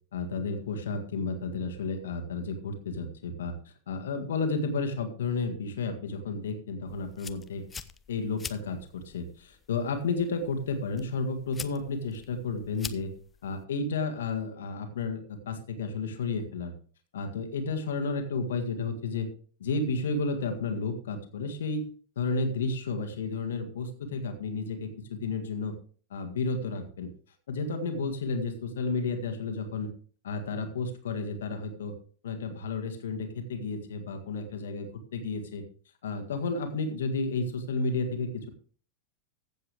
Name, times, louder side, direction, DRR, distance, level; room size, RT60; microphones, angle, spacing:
voice 1, 0.1-7.6 8.1-13.1 13.4-16.7 17.1-19.3 19.6-21.9 22.1-25.7 26.1-27.1 27.5-29.9 30.2-32.0 32.2-35.6 36.0-38.5, left 3 dB, 60° left, 6 dB, 1.7 m, -32 dB
sound 1, 6.9-13.7, left 6 dB, 20° left, 0.7 m, -46 dB
15.0 x 7.6 x 3.4 m, 0.43 s
figure-of-eight pair, 90°, 0 cm